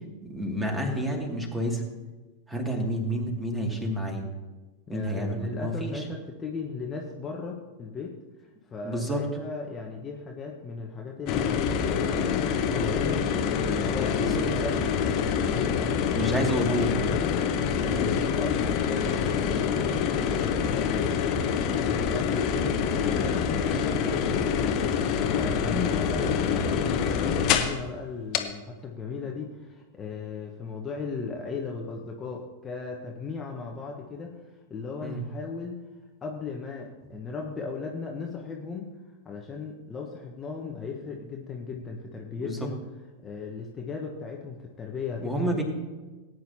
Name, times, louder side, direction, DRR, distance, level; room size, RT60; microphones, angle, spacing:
voice 1, 0.2-1.8 2.5-4.2 4.9-6.1 8.8-9.2 14.2-14.4 16.1-17.0 17.9-18.1 25.4-25.7 35.0-35.2 42.4-42.6 45.2-45.6, equal, 10° right, 2 dB, 2.4 m, -29 dB
voice 2, 4.9-8.2 8.7-20.1 20.4-34.4 34.7-35.8 36.2-38.9 39.2-42.8 43.2-45.6, left 4 dB, 20° left, -1 dB, 1.2 m, -36 dB
sound 1, 11.3-27.8 28.3-28.4, left 7 dB, 40° left, 1.1 m, -26 dB
19.0 x 9.4 x 2.9 m, 1.2 s
figure-of-eight pair, 90°, 0 cm